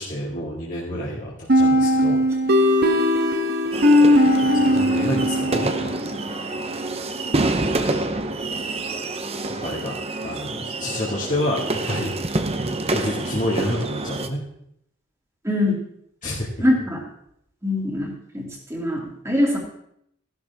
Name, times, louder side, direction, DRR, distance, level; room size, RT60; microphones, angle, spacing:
voice 1, 0.0-2.2 4.4-5.9 8.6-8.7 9.6-12.1 12.9-14.4 16.2-16.5, left 1 dB, 40° left, -6 dB, 2.2 m, -29 dB
sound 1, 1.5-6.2, left 1 dB, 50° right, 1.2 m, -18 dB
sound 2, 3.7-14.3, right 2 dB, 30° right, 0.8 m, -27 dB
voice 2, 16.6-17.0 17.6-19.6, left 1 dB, 15° right, -1 dB, 2.6 m, -23 dB
15.0 x 11.5 x 3.6 m, 0.74 s
head